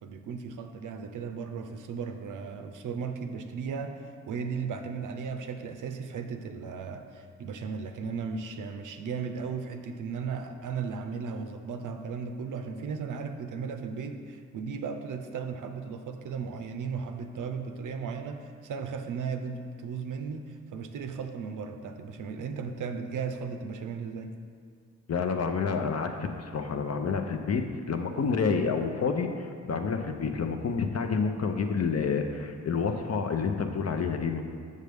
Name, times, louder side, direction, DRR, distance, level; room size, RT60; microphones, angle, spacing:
voice 1, 0.0-24.3, right 5 dB, 80° right, 7 dB, 0.5 m, -36 dB
voice 2, 25.1-34.4, left 5 dB, 55° left, 5 dB, 0.7 m, -29 dB
6.5 x 6.5 x 3.4 m, 2.2 s
cardioid pair, 45°, 31 cm